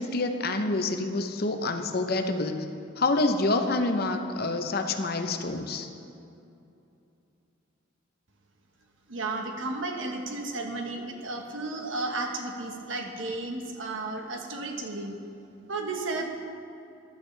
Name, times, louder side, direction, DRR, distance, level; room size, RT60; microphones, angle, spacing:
voice 1, 0.0-2.7 3.0-5.9, left 2 dB, 50° left, 6 dB, 0.7 m, -27 dB
voice 2, 9.1-15.2 15.7-16.3, right 2 dB, 75° right, 3 dB, 1.3 m, -33 dB
15.0 x 11.0 x 3.3 m, 2.7 s
head